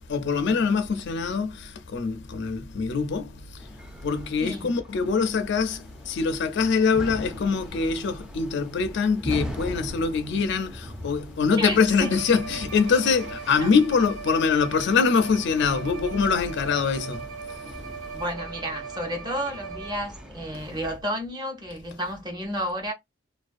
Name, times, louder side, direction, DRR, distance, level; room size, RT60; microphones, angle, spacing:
voice 1, 0.0-3.3 4.0-17.2, left 5 dB, 60° left, 0.4 m, -24 dB
sound 1, 3.6-21.0, equal, 5° right, 0.4 m, -41 dB
voice 2, 4.4-4.7 11.6-12.1 13.6-13.7 18.1-22.9, equal, 20° right, 0.8 m, -31 dB
Bowed string instrument, 12.0-20.3, right 5 dB, 85° right, 1.5 m, -39 dB
2.4 x 2.2 x 2.4 m
head